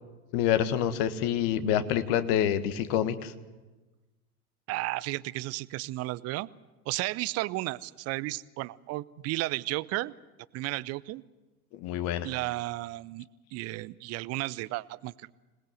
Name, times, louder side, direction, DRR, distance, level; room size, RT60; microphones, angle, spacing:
voice 1, 0.3-3.3 11.7-12.3, left 10 dB, 45° left, 10 dB, 1.7 m, -27 dB
voice 2, 4.7-6.5 6.9-10.1 10.5-11.2 12.2-15.3, right 19 dB, 35° right, 20 dB, 0.7 m, -33 dB
26.5 x 19.5 x 7.9 m, 1.2 s
figure-of-eight pair, 80°, 45 cm